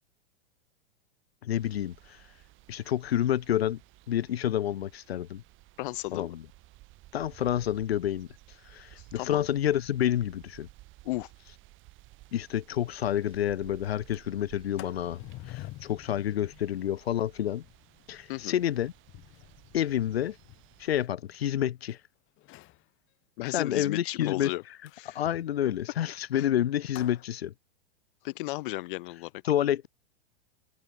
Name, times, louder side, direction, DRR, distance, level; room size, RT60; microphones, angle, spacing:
voice 1, 1.4-1.9 2.7-3.8 4.1-5.4 6.1-6.4 7.1-8.3 8.7-10.7 12.3-15.2 15.5-17.6 18.1-18.9 19.7-20.3 20.8-22.0 23.5-24.5 25.1-27.5 29.4-29.9, left 11 dB, 75° left, 1.2 m, -29 dB
sound 1, 1.5-21.1, right 18 dB, 40° right, 4.4 m, -55 dB
voice 2, 5.8-6.4 8.9-9.4 11.0-11.3 18.3-18.5 23.4-24.6 25.0-25.2 26.3-26.4 28.2-29.3, left 19 dB, 55° left, 1.2 m, -34 dB
Sliding door, 12.4-12.5 12.8-12.9 13.2-13.5 13.9-21.9 22.4-22.8 24.8-27.2, left 19 dB, 40° left, 4.8 m, -50 dB
open air
hypercardioid pair, 105°, 31 cm